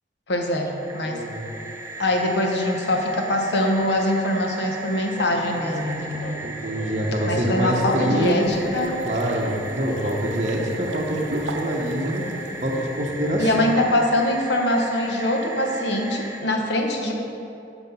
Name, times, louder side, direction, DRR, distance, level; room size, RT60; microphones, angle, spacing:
voice 1, 0.3-1.2 2.0-6.4 7.3-9.0 13.4-17.1, left 1 dB, 70° left, 2 dB, 0.8 m, -23 dB
sound 1, 0.6-16.4, right 2 dB, 15° right, 0.4 m, -37 dB
voice 2, 1.1-1.5 6.4-8.5 9.0-12.3 12.6-13.7, right 1 dB, 40° right, -2 dB, 0.8 m, -25 dB
Singing, 5.1-13.7, equal, 40° left, 0.6 m, -40 dB
sound 2, 7.7-13.1, right 2 dB, 75° right, 0.6 m, -37 dB
6.0 x 5.7 x 5.6 m, 2.8 s
head